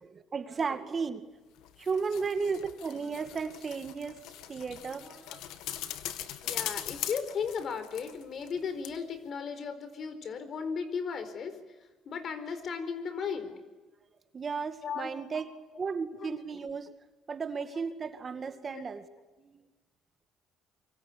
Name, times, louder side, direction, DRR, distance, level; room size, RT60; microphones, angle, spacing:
voice 1, 0.0-1.2 1.8-4.2 4.5-5.5 6.4-6.6 14.3-15.5 15.8-16.9 17.3-19.1 19.4-19.7, right 5 dB, 35° right, 9 dB, 2.1 m, -34 dB
sound 1, 1.6-8.6 8.8-8.9, left 12 dB, 85° left, 2.0 m, -40 dB
voice 2, 6.4-11.5 12.1-13.5 14.8-15.1 16.2-16.4 18.7-18.8, left 6 dB, 50° left, 11 dB, 4.5 m, -36 dB
25.5 x 24.0 x 8.7 m, 1.2 s
cardioid pair, 100°, 0 cm